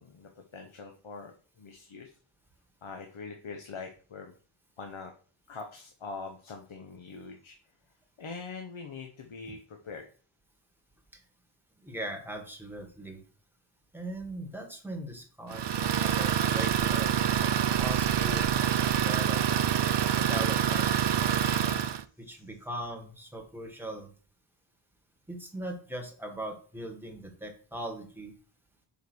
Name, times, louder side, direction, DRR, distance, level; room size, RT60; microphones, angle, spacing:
voice 1, 0.0-2.1 2.8-4.3 4.8-5.1 5.5-7.5 8.2-10.0 21.6-21.9, left 4 dB, 80° left, 4 dB, 1.1 m, -43 dB
voice 2, 11.8-13.2 13.9-19.4 20.2-20.9 22.2-24.1 25.3-28.3, right 1 dB, 5° right, 2 dB, 1.8 m, -40 dB
Idling, 15.5-22.0, right 9 dB, 60° right, 0.6 m, -26 dB
5.1 x 5.1 x 6.2 m, 0.40 s
wide cardioid pair, 95°, 48 cm